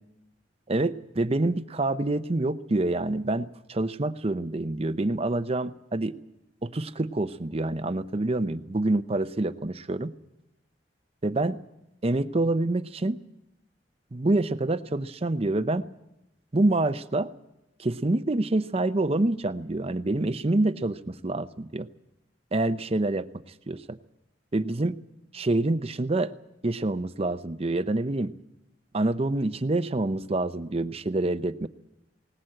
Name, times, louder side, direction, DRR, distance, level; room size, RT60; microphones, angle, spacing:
voice 1, 0.7-6.1 6.6-10.1 11.2-11.6 12.0-13.2 14.1-15.8 16.5-17.3 17.8-21.9 22.5-23.3 23.7-24.0 24.5-24.9 25.3-26.3 26.6-28.3 28.9-31.7, right 2 dB, 35° right, 11 dB, 0.7 m, -26 dB
20.0 x 19.0 x 7.7 m, 0.90 s
head